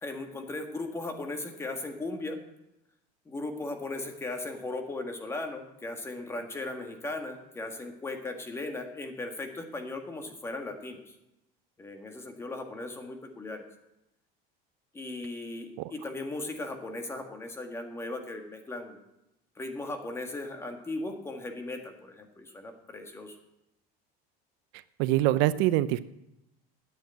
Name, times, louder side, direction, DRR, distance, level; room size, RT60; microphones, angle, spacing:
voice 1, 0.0-2.4 3.2-11.2 11.8-13.6 14.9-19.0 19.5-23.4, left 2 dB, 10° left, 5 dB, 1.6 m, -37 dB
voice 2, 25.0-26.0, right 15 dB, 65° right, 15 dB, 0.6 m, -24 dB
9.6 x 9.2 x 8.9 m, 0.88 s
cardioid pair, 165°, 20 cm